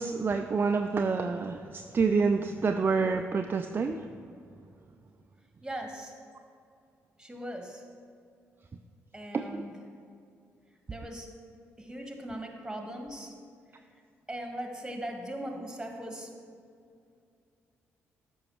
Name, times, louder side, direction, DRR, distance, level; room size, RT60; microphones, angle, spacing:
voice 1, 0.0-4.0 9.3-9.6, right 4 dB, 30° right, 6 dB, 0.4 m, -28 dB
voice 2, 5.6-6.1 7.2-7.8 9.1-9.8 10.9-11.3 11.8-13.4 14.3-16.3, right 1 dB, 10° right, 3 dB, 1.5 m, -39 dB
13.5 x 5.5 x 3.1 m, 2.4 s
figure-of-eight pair, 40°, 7 cm